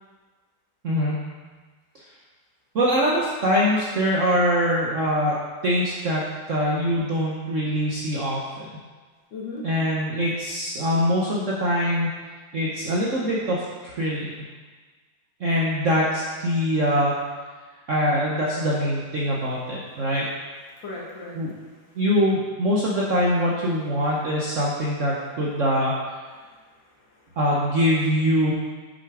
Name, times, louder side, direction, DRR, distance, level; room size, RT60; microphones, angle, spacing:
voice 1, 0.8-1.3 1.9-2.0 2.7-5.4 5.6-8.7 9.6-12.1 12.5-14.3 15.4-17.1 17.9-20.3 21.3-21.5 22.0-26.2 27.4-28.5, equal, 50° right, -4 dB, 1.1 m, -23 dB
voice 2, 9.3-9.7 19.9-20.0 20.7-22.0 26.3-27.4, left 3 dB, 80° left, -4 dB, 2.6 m, -40 dB
8.2 x 6.6 x 4.8 m, 1.4 s
omnidirectional pair, 2.0 m